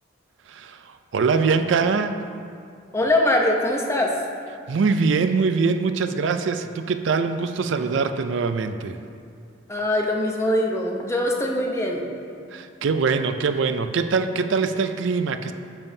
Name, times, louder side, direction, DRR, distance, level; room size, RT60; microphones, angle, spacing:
voice 1, 0.5-2.1 4.7-9.0 12.5-15.5, right 4 dB, 70° right, 9 dB, 0.4 m, -23 dB
voice 2, 2.9-4.1 9.7-12.0, left 1 dB, 15° left, 0 dB, 0.7 m, -22 dB
10.5 x 7.0 x 2.7 m, 2.4 s
head